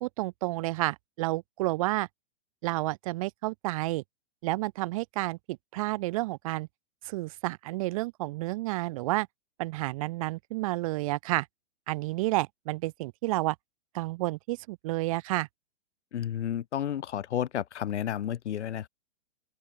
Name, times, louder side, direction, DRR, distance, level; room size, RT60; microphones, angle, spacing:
voice 1, 0.0-2.1 2.6-4.0 4.4-6.7 7.0-9.3 9.6-11.5 11.9-13.6 13.9-15.5, right 20 dB, 30° right, 0.5 m, -30 dB
voice 2, 16.1-18.9, left 10 dB, 70° left, 5.8 m, -31 dB
open air
hypercardioid pair, 135°, 35 cm